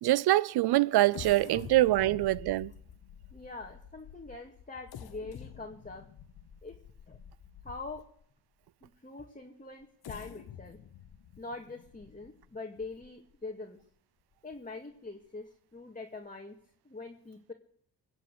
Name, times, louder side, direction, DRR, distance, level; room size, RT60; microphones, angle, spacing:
voice 1, 0.0-2.7, right 16 dB, 70° right, 0.5 m, -24 dB
sound 1, 1.1-8.2 8.8-8.9 9.8-13.3 13.8-13.9 14.3-14.5, left 9 dB, 65° left, 1.3 m, -48 dB
voice 2, 3.3-6.1 6.6-6.7 7.1-7.2 7.6-8.0 8.8-10.8 11.4-13.8 14.4-16.6 16.8-17.5, left 3 dB, 20° left, 2.1 m, -44 dB
22.0 x 7.7 x 7.8 m
supercardioid pair, 45°, 40 cm